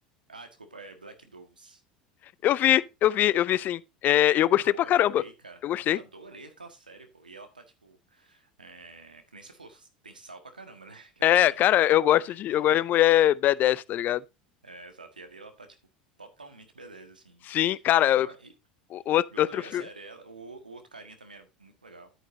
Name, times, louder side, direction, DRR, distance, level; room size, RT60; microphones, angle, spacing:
voice 1, 0.3-1.8 4.7-11.7 12.3-12.7 14.6-15.7 16.2-17.8 18.1-18.5 19.3-22.1, right 3 dB, 90° right, 1.6 m, -48 dB
voice 2, 2.4-5.2 5.6-6.0 11.2-14.2 17.5-18.3 18.9-19.8, left 12 dB, 40° left, 0.5 m, -22 dB
10.0 x 9.1 x 2.7 m
figure-of-eight pair, 75°, 4 cm